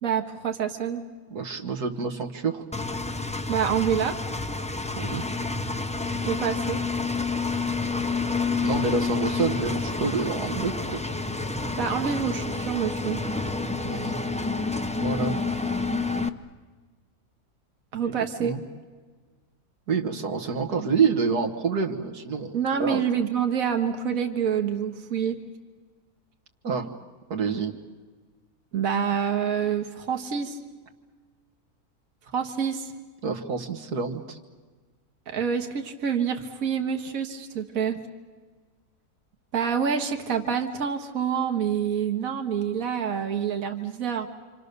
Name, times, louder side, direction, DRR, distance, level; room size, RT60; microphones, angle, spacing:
voice 1, 0.0-1.1 3.5-4.2 6.1-6.8 11.8-13.2 17.9-18.5 22.5-25.4 28.7-30.6 32.3-32.9 35.3-38.0 39.5-44.3, right 7 dB, 65° right, 5 dB, 1.9 m, -27 dB
voice 2, 1.3-2.6 5.0-5.2 8.6-11.0 13.8-14.2 15.0-15.4 18.0-18.6 19.9-23.0 26.6-26.9 27.3-27.7 33.2-34.4, right 5 dB, 80° right, 3 dB, 2.0 m, -28 dB
Engine, 2.7-16.3, left 3 dB, 10° left, 0.4 m, -29 dB
28.5 x 26.5 x 6.8 m, 1.4 s
omnidirectional pair, 1.6 m